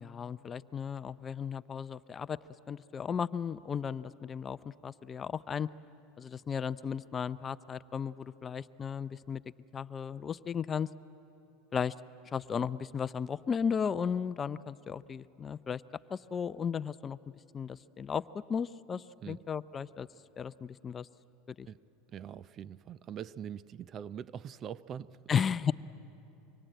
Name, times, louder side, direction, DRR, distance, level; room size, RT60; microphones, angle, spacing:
voice 1, 0.0-2.4 2.7-5.7 6.2-9.4 9.7-10.9 11.7-11.9 12.3-15.8 16.1-17.2 17.5-18.2 18.5-20.1 20.4-21.1 21.5-21.7 25.3-25.7, left 7 dB, 25° left, 16 dB, 0.5 m, -35 dB
voice 2, 22.1-25.4, right 9 dB, 40° right, 18 dB, 0.5 m, -43 dB
25.0 x 24.0 x 9.1 m, 2.9 s
supercardioid pair, 110°, 0 cm